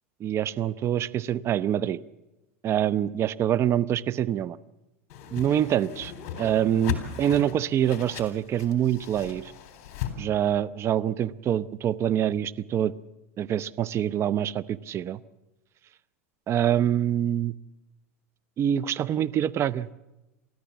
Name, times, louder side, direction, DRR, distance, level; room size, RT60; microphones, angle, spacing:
voice 1, 0.2-2.0 2.6-4.6 5.3-6.1 6.4-9.5 10.2-12.9 13.4-15.2 16.5-17.5 18.6-19.9, right 10 dB, 35° right, 17 dB, 0.8 m, -25 dB
Whoosh swoosh swish, 5.1-10.1, left 10 dB, 55° left, 3.8 m, -36 dB
28.5 x 13.5 x 7.3 m, 0.98 s
hypercardioid pair, 110°, 8 cm